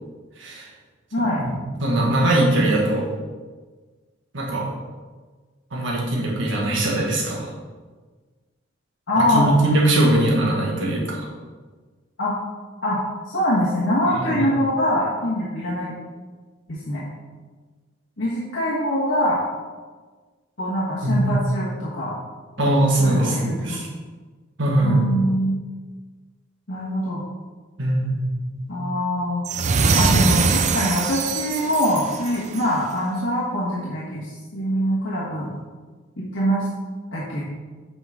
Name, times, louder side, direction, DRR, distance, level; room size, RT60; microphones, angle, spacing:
voice 1, 0.4-0.7 1.2-1.5 1.8-3.1 4.3-4.7 5.7-7.5 9.2-11.3 14.1-14.5 21.0-21.2 22.6-23.9 24.6-25.1 27.8-28.2 28.5-28.7, right 1 dB, 70° right, -2 dB, 1.7 m, -21 dB
voice 2, 1.1-1.4 9.1-9.5 12.2-12.3 12.8-13.0 13.2-16.0 16.7-17.0 18.2-19.4 20.6-22.2 23.0-23.8 24.8-25.6 26.7-27.2 28.7-29.4 29.9-35.5 36.2-36.7 37.1-37.4, equal, 75° left, -7 dB, 1.4 m, -23 dB
sound 1, 29.4-32.8, right 4 dB, 40° right, 0.4 m, -22 dB
7.9 x 5.5 x 3.7 m, 1.4 s
head